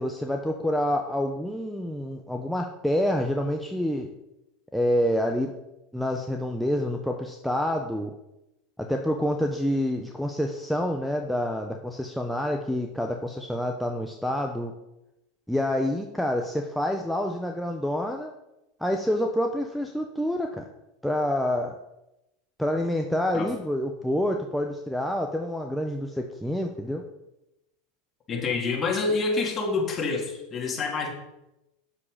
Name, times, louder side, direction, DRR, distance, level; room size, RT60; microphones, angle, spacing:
voice 1, 0.0-4.1 4.7-5.5 5.9-8.1 8.8-14.7 15.5-18.3 18.8-20.6 21.0-21.8 22.6-27.0, left 1 dB, ahead, 2 dB, 0.9 m, -27 dB
voice 2, 28.3-31.1, left 4 dB, 30° left, 0 dB, 2.8 m, -27 dB
8.7 x 7.2 x 5.0 m, 0.92 s
hypercardioid pair, 95°, 0 cm